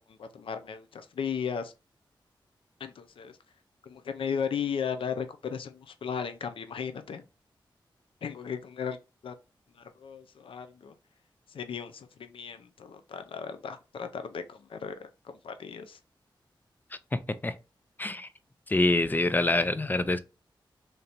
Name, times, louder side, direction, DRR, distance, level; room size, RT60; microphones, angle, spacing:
voice 1, 0.1-1.7 2.8-3.4 3.8-7.2 8.2-9.0 9.2-9.3 9.8-10.9 11.5-16.0, left 7 dB, 85° left, 0.5 m, -36 dB
voice 2, 17.1-17.5 18.0-18.3 18.7-20.2, left 2 dB, 20° left, 0.4 m, -26 dB
3.2 x 2.9 x 3.9 m
wide cardioid pair, 75°, 9 cm